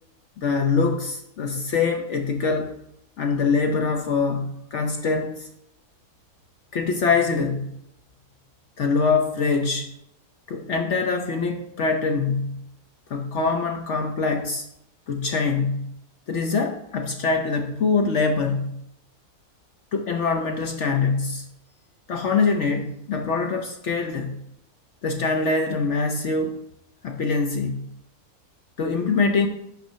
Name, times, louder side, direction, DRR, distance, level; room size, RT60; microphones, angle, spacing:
voice 1, 0.4-2.7 3.2-5.5 6.7-7.7 8.8-9.9 10.5-12.6 13.1-14.7 15.1-15.9 16.3-18.8 19.9-21.5 22.1-24.4 25.0-26.6 27.0-27.9 28.8-29.5, left 4 dB, 60° left, 0.9 m, -24 dB
5.9 x 5.8 x 5.5 m
omnidirectional pair, 1.6 m